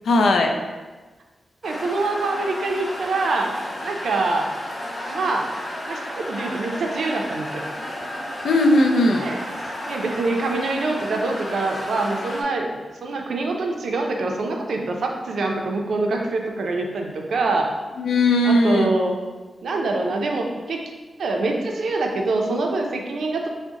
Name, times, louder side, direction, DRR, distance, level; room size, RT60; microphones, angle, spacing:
voice 1, 0.1-0.6 8.4-9.3 18.0-18.9, left 2 dB, 90° left, 3 dB, 0.3 m, -18 dB
sound 1, 1.6-12.4, left 1 dB, 15° left, 0.5 m, -33 dB
voice 2, 1.6-3.5 3.8-4.5 5.1-5.5 5.9-7.7 9.2-9.5 9.9-17.7 18.4-19.2 19.6-20.8 21.2-23.5, right 3 dB, 65° right, 1 dB, 0.4 m, -25 dB
3.6 x 2.1 x 3.8 m, 1.3 s
wide cardioid pair, 175°, 0 cm